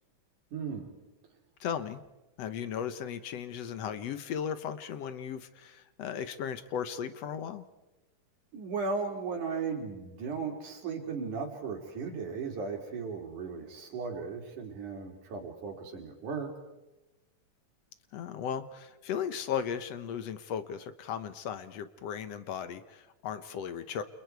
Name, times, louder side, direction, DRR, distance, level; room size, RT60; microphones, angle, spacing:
voice 1, 0.5-0.9 8.5-16.5, right 5 dB, 75° right, 3 dB, 4.7 m, -36 dB
voice 2, 1.6-2.0 2.4-7.6 18.1-24.0, left 8 dB, 65° left, 11 dB, 1.9 m, -36 dB
30.0 x 28.5 x 4.7 m, 1.0 s
omnidirectional pair, 3.6 m